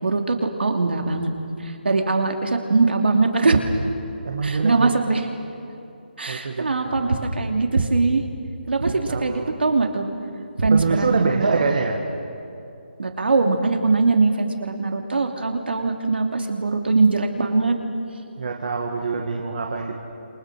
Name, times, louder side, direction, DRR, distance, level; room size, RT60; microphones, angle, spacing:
voice 1, 0.0-1.3 1.6-3.6 4.4-5.3 6.2-8.2 8.7-10.1 10.6-11.6 13.0-17.8, right 3 dB, 75° right, 3 dB, 3.0 m, -21 dB
voice 2, 4.2-5.2 6.3-7.2 8.9-9.5 10.7-12.0 18.4-20.0, right 4 dB, 50° right, 2 dB, 2.0 m, -25 dB
28.0 x 27.0 x 6.4 m, 2.6 s
hypercardioid pair, 170°, 6 cm